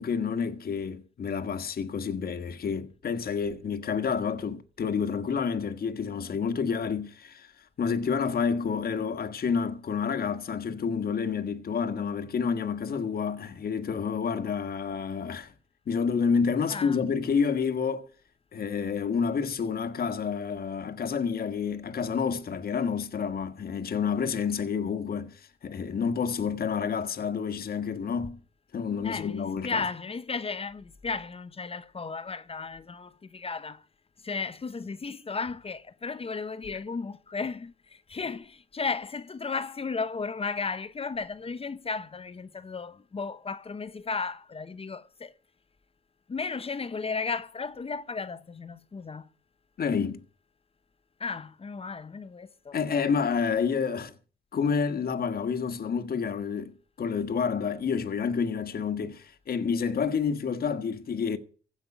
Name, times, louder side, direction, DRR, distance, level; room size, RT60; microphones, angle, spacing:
voice 1, 0.0-7.5 7.8-15.5 15.9-18.1 18.5-28.4 28.7-29.8 49.8-50.2 52.7-54.1 54.5-61.4, left 6 dB, 50° left, 1.6 m, -29 dB
voice 2, 16.7-17.1 29.0-33.9 34.2-45.4 46.3-49.3 51.2-52.8, left 4 dB, 30° left, 0.9 m, -34 dB
16.0 x 5.8 x 10.0 m
cardioid pair, 90°, 20 cm